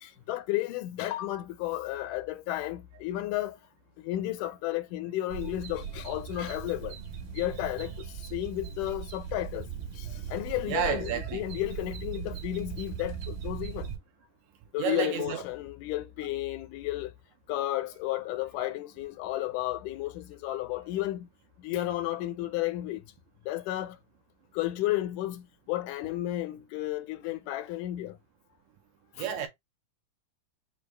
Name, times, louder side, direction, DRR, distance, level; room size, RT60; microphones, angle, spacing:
voice 1, 0.0-3.6 4.0-6.9 7.3-7.9 8.3-9.6 10.0-13.9 14.7-17.1 17.5-21.3 21.6-23.0 23.5-24.0 24.5-28.2 29.2-29.3, left 15 dB, 80° left, 2.1 m, -32 dB
sound 1, 5.3-14.0, right 8 dB, 45° right, 1.8 m, -39 dB
voice 2, 10.7-11.4 14.8-15.4 20.7-20.9 29.2-29.5, right 9 dB, 75° right, 1.9 m, -31 dB
6.4 x 2.3 x 3.2 m
omnidirectional pair, 3.7 m